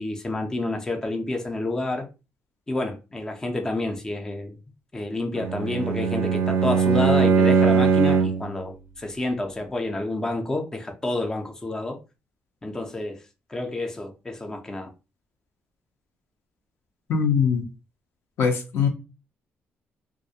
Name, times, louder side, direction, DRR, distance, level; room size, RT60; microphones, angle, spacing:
voice 1, 0.0-2.0 2.7-4.5 4.9-12.0 12.6-13.2 13.5-14.9, left 2 dB, 15° left, 0.4 m, -29 dB
Bowed string instrument, 5.3-8.5, right 5 dB, 55° right, 0.4 m, -20 dB
voice 2, 17.1-17.6 18.4-18.9, left 6 dB, 70° left, 0.6 m, -21 dB
2.4 x 2.0 x 2.7 m
cardioid pair, 125°, 4 cm